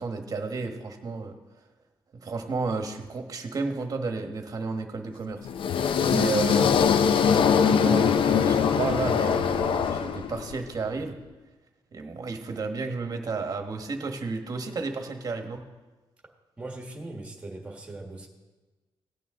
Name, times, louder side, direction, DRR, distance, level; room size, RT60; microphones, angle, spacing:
voice 1, 0.0-1.3 2.1-5.4 6.1-6.8 7.6-11.2 11.9-15.6, right 4 dB, 40° right, 5 dB, 1.2 m, -32 dB
sound 1, 5.4-10.6, left 7 dB, 65° left, 0.5 m, -22 dB
voice 2, 16.6-18.3, right 2 dB, 15° right, 1 dB, 1.6 m, -39 dB
16.5 x 8.9 x 3.7 m, 1.2 s
wide cardioid pair, 165°, 9 cm